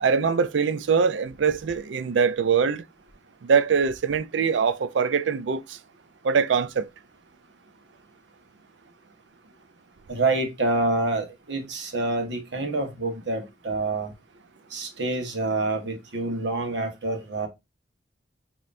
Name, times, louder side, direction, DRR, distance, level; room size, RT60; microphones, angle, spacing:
voice 1, 0.0-2.8 3.4-5.8 6.2-6.9, right 6 dB, 90° right, 0.4 m, -23 dB
voice 2, 10.1-14.1 14.7-17.5, right 2 dB, 70° right, 1.2 m, -27 dB
5.3 x 3.0 x 2.5 m
head